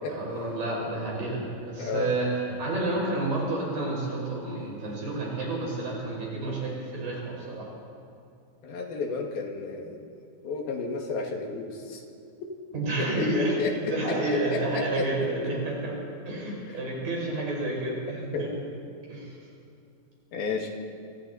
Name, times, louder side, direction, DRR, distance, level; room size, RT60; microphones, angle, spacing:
voice 1, 0.1-7.7 12.7-13.5 13.8-15.9 16.3-18.5 19.1-19.4, right 2 dB, 65° right, -3 dB, 6.7 m, -30 dB
voice 2, 1.8-2.3 8.6-10.0 10.4-12.0 13.0-13.3 13.6-13.9 14.3-15.0 17.6-17.7 18.3-18.5 20.3-20.7, left 4 dB, 85° left, 2 dB, 4.0 m, -32 dB
27.5 x 25.0 x 4.2 m, 2.5 s
omnidirectional pair, 4.1 m